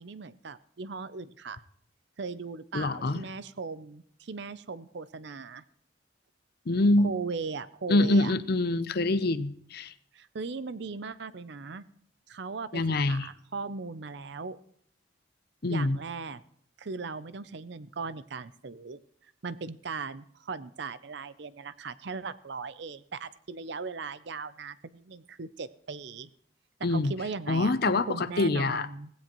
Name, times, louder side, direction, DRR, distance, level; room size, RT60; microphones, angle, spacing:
voice 1, 0.0-1.6 2.2-5.6 7.0-8.3 10.1-11.8 12.3-12.8 13.1-14.6 15.6-16.4 16.8-19.0 19.4-26.3 26.8-27.7 28.1-29.1, right 4 dB, 60° right, 15 dB, 0.6 m, -38 dB
voice 2, 2.7-3.2 6.7-7.1 7.9-9.9 12.7-13.3 15.6-16.0 26.8-27.1 27.5-28.9, left 2 dB, 55° left, 13 dB, 0.6 m, -25 dB
18.0 x 16.0 x 3.0 m, 0.66 s
head